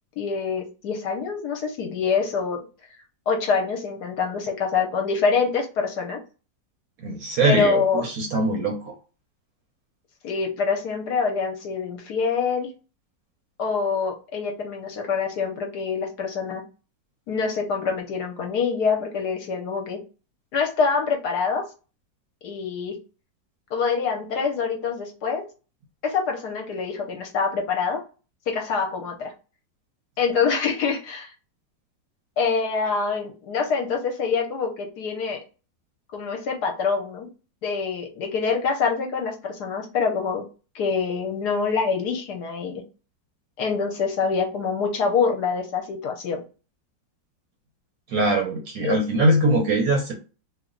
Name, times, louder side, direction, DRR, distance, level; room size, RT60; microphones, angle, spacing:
voice 1, 0.2-2.6 3.3-6.2 7.4-8.0 10.2-12.7 13.6-16.6 17.3-20.0 20.5-21.6 22.4-23.0 23.7-25.4 26.0-28.0 28.5-29.3 30.2-31.3 32.4-35.4 36.1-37.3 37.6-40.4 40.7-42.8 43.6-46.4 48.8-49.0, left 5 dB, 70° left, 2 dB, 1.2 m, -25 dB
voice 2, 7.0-8.9 48.1-50.1, right 1 dB, 65° right, 2 dB, 1.0 m, -22 dB
3.0 x 2.2 x 3.7 m, 0.34 s
omnidirectional pair, 2.0 m